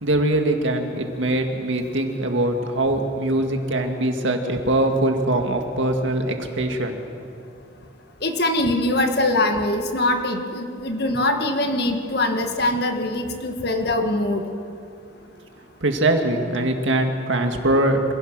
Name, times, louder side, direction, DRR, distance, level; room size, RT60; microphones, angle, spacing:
voice 1, 0.0-7.0 15.8-18.1, right 1 dB, 75° right, 4 dB, 2.0 m, -22 dB
voice 2, 8.2-14.4, left 1 dB, 55° left, 5 dB, 1.7 m, -22 dB
26.5 x 16.5 x 6.2 m, 2.5 s
head